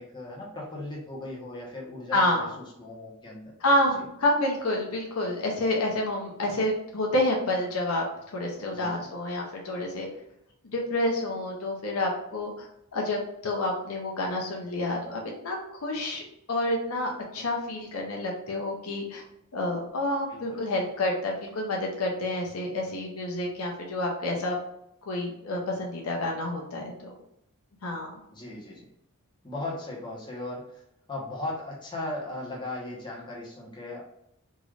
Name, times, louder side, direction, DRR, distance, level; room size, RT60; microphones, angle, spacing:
voice 1, 0.0-2.4 2.8-3.5 3.9-4.0 8.7-9.0 20.3-20.6 28.3-28.9 29.4-30.7 31.1-34.0, left 2 dB, 20° left, -4 dB, 1.1 m, -37 dB
voice 2, 2.1-2.5 3.6-8.0 8.3-10.1 10.6-12.7 12.9-16.2 16.5-19.2 19.5-24.6 25.1-27.1 27.8-28.2, left 1 dB, 70° left, 0 dB, 0.8 m, -28 dB
3.7 x 2.6 x 3.2 m, 0.77 s
head